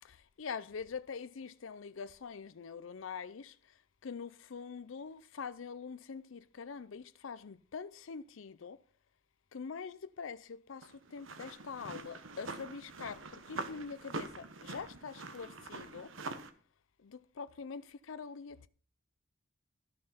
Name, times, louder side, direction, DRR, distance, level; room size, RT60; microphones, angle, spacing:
voice 1, 0.0-3.6 4.0-8.8 9.5-16.1 17.0-18.7, left 5 dB, 80° left, 0.5 m, -44 dB
sound 1, 10.8-16.5, right 3 dB, 80° right, 1.2 m, -45 dB
14.0 x 6.6 x 5.6 m
head